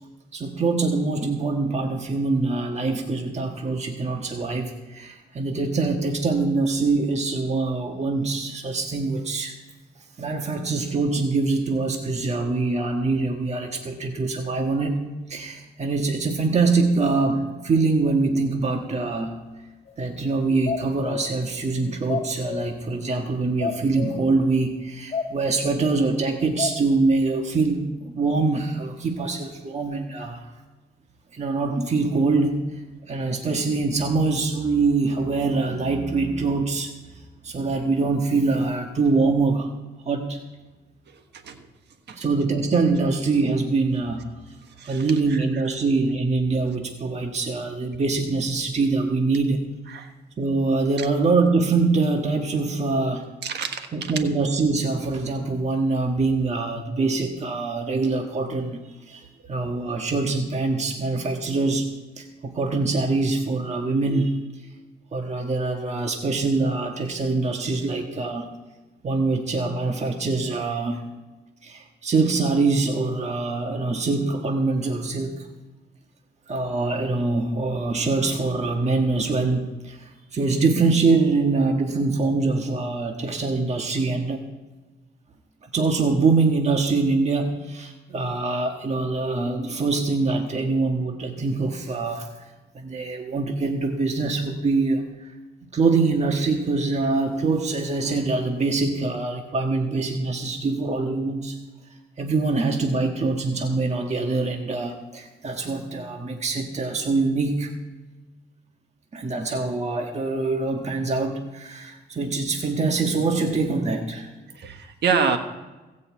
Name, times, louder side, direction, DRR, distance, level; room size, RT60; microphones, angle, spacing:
voice 1, 0.3-9.6 10.2-15.0 15.3-19.4 20.0-30.4 31.3-39.7 40.0-40.4 42.1-44.3 44.8-49.6 50.4-53.3 53.9-64.5 65.1-68.5 69.0-71.0 71.6-75.5 76.5-84.5 85.6-92.4 92.7-95.3 95.7-101.6 102.2-107.7 109.1-114.3, right 3 dB, 40° right, 3 dB, 1.5 m, -24 dB
sound 1, 19.9-20.0 20.4-21.3 21.8-22.8 23.2-23.3 23.6-24.3 24.7-24.8 25.1-25.8 26.3-26.8, left 6 dB, 35° left, 2.5 m, -30 dB
voice 2, 44.8-45.6 49.9-50.1 51.0-51.1 53.4-53.9 114.5-115.4, right 6 dB, 75° right, 7 dB, 1.4 m, -27 dB
15.5 x 5.5 x 8.3 m, 1.2 s
cardioid pair, 85°, 18 cm